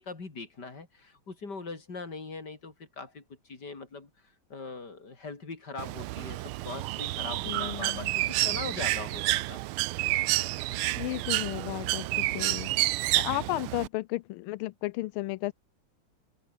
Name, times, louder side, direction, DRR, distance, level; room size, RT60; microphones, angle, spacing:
voice 1, 0.0-9.7, left 4 dB, 50° left, 4.4 m, -41 dB
Bird, 5.8-13.9, right 18 dB, 90° right, 1.5 m, -29 dB
voice 2, 7.4-8.1 11.0-12.7 13.1-15.5, left 19 dB, 90° left, 1.4 m, -33 dB
open air
omnidirectional pair, 2.3 m